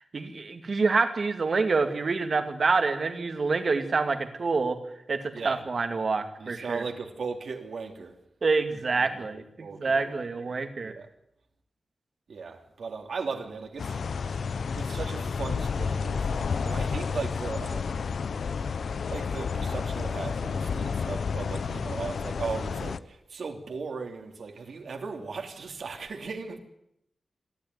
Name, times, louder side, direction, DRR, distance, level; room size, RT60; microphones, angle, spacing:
voice 1, 0.0-4.8 5.1-6.9 8.4-11.0, right 4 dB, 50° right, 2.4 m, -27 dB
voice 2, 6.4-8.1 8.7-9.3 9.6-10.4 10.8-11.1 12.3-14.0 14.3-14.4 14.7-18.0 19.1-26.6, right 4 dB, 70° right, 3.2 m, -37 dB
sound 1, 13.8-23.0, left 5 dB, 75° left, 0.8 m, -31 dB
27.0 x 12.5 x 9.8 m
wide cardioid pair, 155°, 0 cm